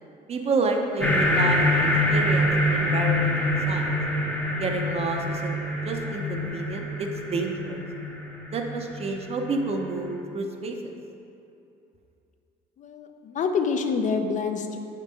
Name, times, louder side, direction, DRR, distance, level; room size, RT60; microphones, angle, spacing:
voice 1, 0.3-3.9 4.6-5.5 5.8-7.8 8.5-10.8, right 3 dB, 35° right, 3 dB, 0.6 m, -29 dB
sound 1, 1.0-9.9, left 1 dB, 10° left, 0.7 m, -25 dB
voice 2, 12.8-14.8, left 5 dB, 45° left, 6 dB, 0.5 m, -27 dB
4.8 x 3.7 x 5.2 m, 2.7 s
cardioid pair, 110°, 17 cm